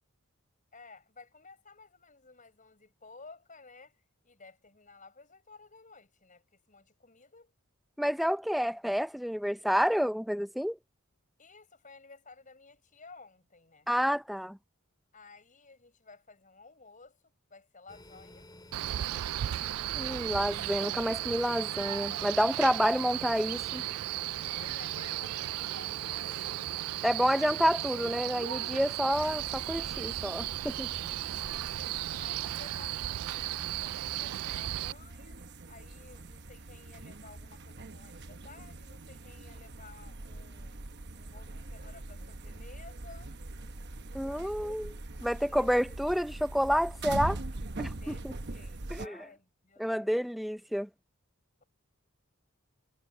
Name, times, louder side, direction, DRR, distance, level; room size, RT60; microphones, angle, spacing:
voice 1, 0.7-7.5 11.4-13.9 15.1-18.5 24.5-26.8 27.3-27.5 30.8-31.7 32.2-35.4 35.7-40.8 41.2-43.3 44.2-44.8 45.3-46.0 48.0-50.2, left 4 dB, 35° left, 5.5 m, -54 dB
voice 2, 8.0-10.8 13.9-14.6 19.9-23.8 27.0-30.9 44.1-44.9 45.2-47.4 47.8-48.3 48.9-49.2 49.8-50.9, equal, ahead, 0.5 m, -29 dB
sound 1, 17.9-28.2, left 1 dB, 20° left, 4.6 m, -52 dB
Male speech man speaking, 18.7-34.9, right 14 dB, 90° right, 0.3 m, -35 dB
sound 2, 29.1-49.1, right 2 dB, 50° right, 1.1 m, -43 dB
head